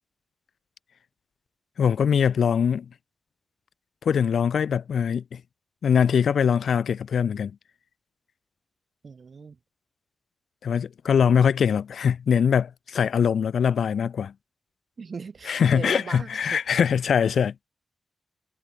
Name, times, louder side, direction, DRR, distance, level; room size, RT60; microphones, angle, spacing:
voice 1, 1.8-2.9 4.0-5.4 5.8-7.5 10.6-14.3 15.5-17.7, left 7 dB, 85° left, 0.7 m, -22 dB
voice 2, 9.0-9.6 15.0-16.6, right 5 dB, 45° right, 1.7 m, -38 dB
wide cardioid pair, 165°, 0 cm